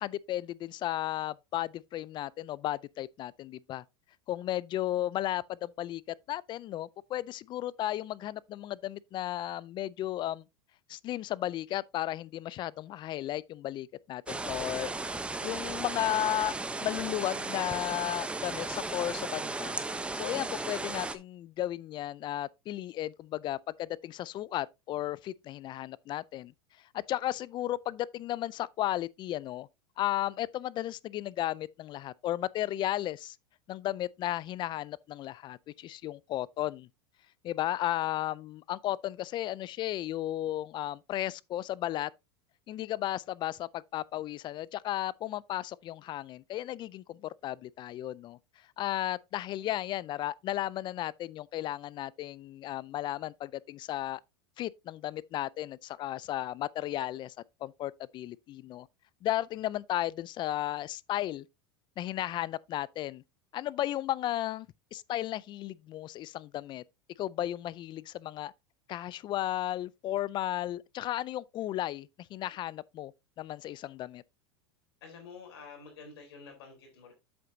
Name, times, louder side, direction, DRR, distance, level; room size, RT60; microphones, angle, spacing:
voice 1, 0.0-3.8 4.3-6.0 6.3-10.4 10.9-14.9 15.4-19.8 20.1-26.5 26.9-29.7 30.0-33.4 33.7-36.9 37.4-42.1 42.7-48.4 48.8-54.2 54.6-57.3 57.6-58.9 59.2-61.5 62.0-63.2 63.5-66.8 67.2-68.5 68.9-73.1 73.4-74.2, left 13 dB, 35° left, 0.4 m, -34 dB
sound 1, 14.3-21.2, right 2 dB, 10° right, 0.8 m, -35 dB
voice 2, 75.0-77.1, left 5 dB, 80° left, 3.8 m, -49 dB
7.8 x 7.7 x 2.7 m
supercardioid pair, 115°, 13 cm